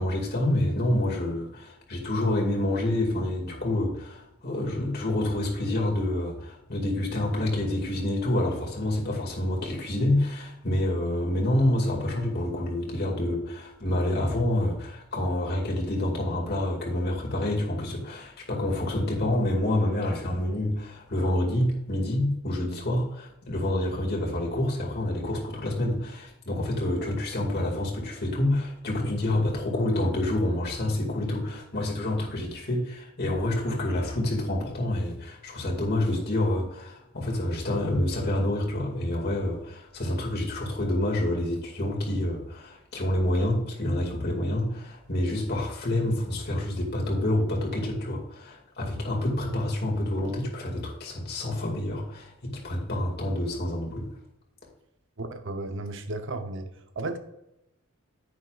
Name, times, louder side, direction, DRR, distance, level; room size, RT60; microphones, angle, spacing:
voice 1, 0.0-54.1, left 1 dB, 50° left, -1 dB, 2.3 m, -28 dB
voice 2, 55.2-56.7 57.0-57.2, right 2 dB, 65° right, 7 dB, 0.9 m, -33 dB
9.8 x 9.3 x 2.5 m, 0.87 s
head